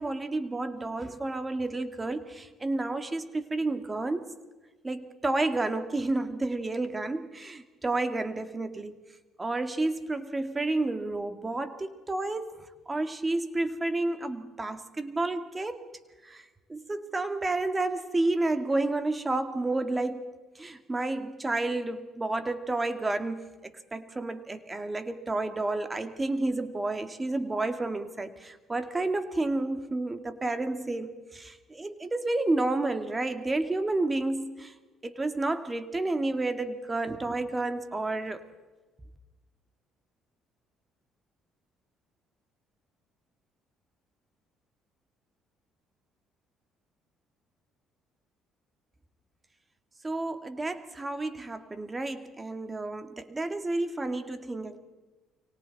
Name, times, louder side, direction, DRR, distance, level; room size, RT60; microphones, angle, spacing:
voice 1, 0.0-4.3 4.8-9.0 9.4-15.8 16.2-16.4 16.7-34.7 35.0-38.4 50.0-54.8, right 2 dB, 20° right, 8 dB, 2.2 m, -31 dB
29.5 x 24.5 x 4.2 m, 1.2 s
supercardioid pair, 75°, 0 cm